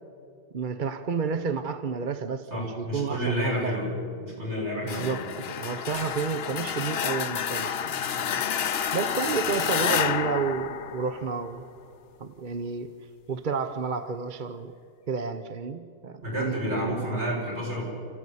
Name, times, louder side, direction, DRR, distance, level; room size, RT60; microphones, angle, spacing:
voice 1, 0.5-3.9 4.8-8.5 8.9-11.7 12.2-12.9 13.3-14.7 15.1-17.1, right 5 dB, 45° right, 9 dB, 0.9 m, -31 dB
voice 2, 2.5-3.9 4.2-5.2 16.2-17.8, equal, 75° right, -4 dB, 7.7 m, -30 dB
sound 1, 4.9-11.6, left 8 dB, 65° left, 1.0 m, -29 dB
28.0 x 15.0 x 9.9 m, 2.4 s
omnidirectional pair, 1.2 m